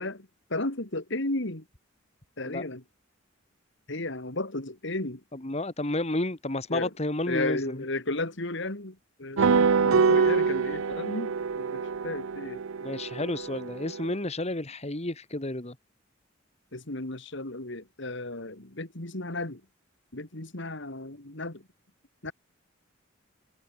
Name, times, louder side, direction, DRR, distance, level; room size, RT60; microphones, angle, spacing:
voice 1, 0.0-1.6 2.4-2.8 3.9-5.2 6.7-6.9 7.3-12.6 16.7-19.6 20.1-21.6 22.2-22.3, left 2 dB, 60° left, 2.9 m, -34 dB
voice 2, 5.3-7.8 9.4-9.5 12.8-15.8, left 2 dB, 30° left, 1.9 m, -31 dB
sound 1, 9.4-14.1, right 5 dB, 85° right, 0.6 m, -25 dB
head